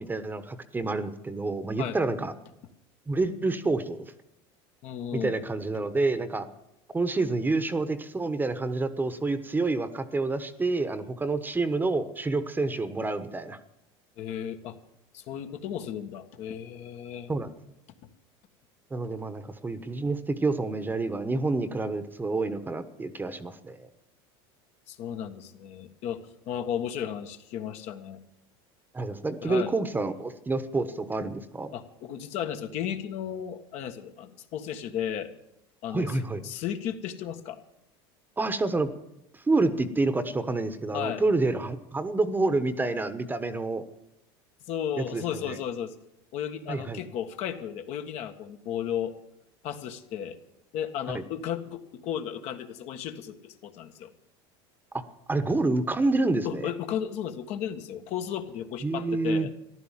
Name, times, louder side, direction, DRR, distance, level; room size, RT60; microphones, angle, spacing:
voice 1, 0.0-2.3 3.1-4.0 5.1-6.5 6.9-13.6 17.3-17.5 18.9-23.9 28.9-31.7 35.9-36.4 38.4-38.9 39.5-43.8 45.0-45.6 46.7-47.0 51.1-51.2 55.3-56.6 58.8-59.5, right 3 dB, 15° right, 12 dB, 1.1 m, -28 dB
voice 2, 4.8-5.4 14.2-14.8 15.1-17.3 24.9-28.2 29.4-29.7 31.7-35.3 35.8-37.6 40.9-41.3 44.7-45.9 46.3-49.1 49.6-50.4 50.7-54.1 56.4-59.5, left 9 dB, 60° left, 7 dB, 1.6 m, -34 dB
14.5 x 11.5 x 7.4 m, 0.82 s
supercardioid pair, 110°, 13 cm